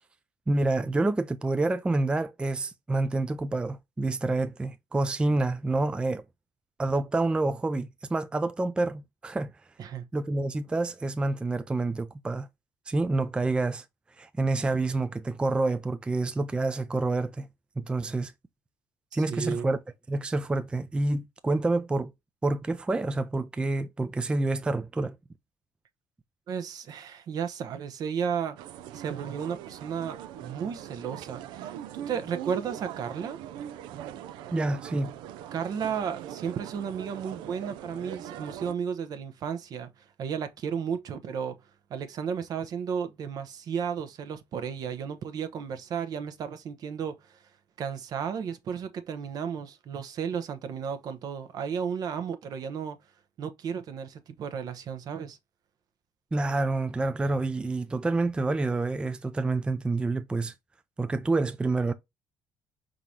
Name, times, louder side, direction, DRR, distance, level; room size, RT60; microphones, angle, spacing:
voice 1, 0.5-6.2 6.8-9.5 10.1-12.5 12.9-13.8 14.2-17.5 17.8-18.3 19.1-19.8 20.1-22.1 22.4-25.2 34.5-35.1 56.3-60.5 61.0-61.9, right 2 dB, 15° right, 0.4 m, -28 dB
voice 2, 19.1-19.7 26.5-28.6 28.9-33.4 35.5-41.6 41.9-47.4 47.8-53.0 53.4-55.4, right 7 dB, 55° right, 0.8 m, -33 dB
sound 1, 28.6-38.7, right 11 dB, 90° right, 0.4 m, -41 dB
4.9 x 3.8 x 2.8 m
cardioid pair, 110°, 8 cm